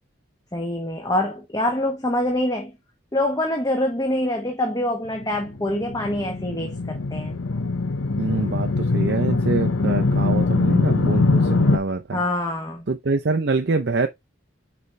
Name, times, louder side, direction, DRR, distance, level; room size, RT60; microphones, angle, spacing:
voice 1, 0.5-2.7 3.1-7.4 12.1-12.9, left 1 dB, 20° left, 1.1 m, -25 dB
sound 1, 5.2-11.8, left 3 dB, 90° left, 0.8 m, -22 dB
voice 2, 8.2-12.2 12.9-14.1, right 3 dB, 60° right, 0.6 m, -25 dB
6.7 x 4.4 x 3.3 m
head